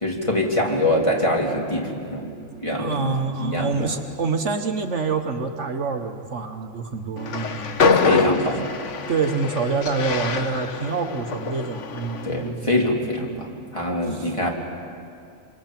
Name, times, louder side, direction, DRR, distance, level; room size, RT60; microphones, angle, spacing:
voice 1, 0.0-2.3 2.6-3.9 8.0-8.8 12.2-14.5, left 1 dB, 25° left, -2 dB, 3.3 m, -24 dB
voice 2, 2.8-7.8 9.1-12.7 13.2-13.4 14.0-14.3, right 4 dB, 65° right, 5 dB, 1.6 m, -26 dB
Train, 7.2-12.4, left 4 dB, 65° left, 1.4 m, -25 dB
27.5 x 23.5 x 7.6 m, 2.4 s
omnidirectional pair, 1.4 m